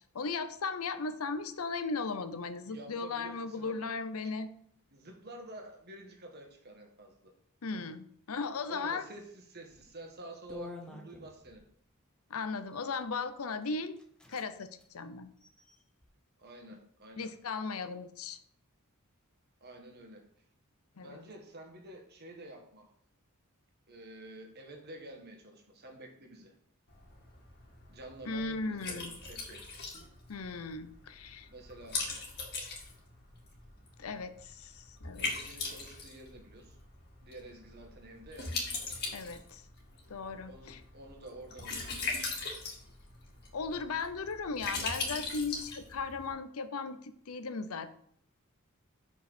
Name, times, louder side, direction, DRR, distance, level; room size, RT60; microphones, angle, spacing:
voice 1, 0.1-4.5 7.6-9.0 12.3-14.0 14.3-15.3 17.2-18.4 21.0-21.2 28.3-29.2 30.3-31.5 34.0-35.3 39.1-39.6 40.1-40.8 43.5-47.9, left 4 dB, 75° left, 12 dB, 0.7 m, -37 dB
voice 2, 2.7-3.9 4.9-7.3 7.7-7.9 8.7-11.6 16.4-17.3 19.6-20.3 21.0-22.9 23.9-26.6 27.9-29.8 31.5-32.0 35.2-36.7 37.2-38.6 40.5-42.1, right 1 dB, 50° right, 3 dB, 1.5 m, -49 dB
sound 1, 9.7-9.9 10.5-11.6 12.6-13.0 13.6-13.7 14.0-14.5 14.7-14.9 15.4-16.1, left 2 dB, 5° left, 0.9 m, -48 dB
Liquid, 26.9-46.3, left 3 dB, 50° left, 1.9 m, -41 dB
6.2 x 5.4 x 5.0 m, 0.65 s
head